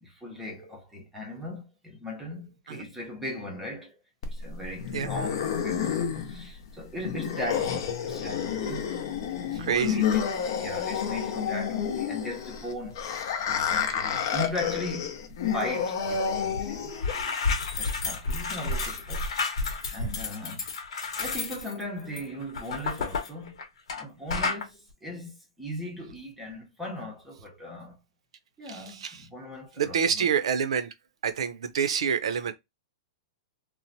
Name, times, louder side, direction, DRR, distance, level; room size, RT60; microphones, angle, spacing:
voice 1, 0.0-4.0 4.3-8.9 9.4-13.1 13.4-20.6 21.2-23.6 24.0-28.0 28.6-30.3, left 1 dB, 5° right, 0.6 m, -38 dB
sound 1, 4.2-17.2, left 7 dB, 50° left, 0.6 m, -30 dB
voice 2, 9.6-9.9 28.7-29.3 29.8-30.9 31.2-32.5, right 7 dB, 85° right, 0.6 m, -27 dB
Dumping glass into trash from dustpan, 16.5-16.7 16.9-24.0 24.3-24.6, left 4 dB, 75° left, 0.9 m, -31 dB
3.0 x 2.0 x 2.7 m
supercardioid pair, 170°, 3 cm